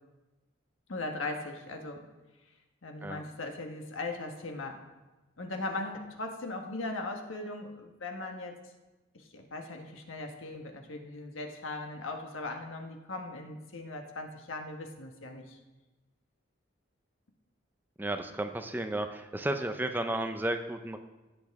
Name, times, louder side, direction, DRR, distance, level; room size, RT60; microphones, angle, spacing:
voice 1, 0.9-2.0 2.8-4.8 5.4-8.6 9.3-15.6, left 2 dB, 90° left, 3 dB, 1.3 m, -39 dB
voice 2, 18.0-21.0, right 1 dB, 10° right, 7 dB, 0.5 m, -33 dB
15.5 x 8.1 x 3.6 m, 1.1 s
head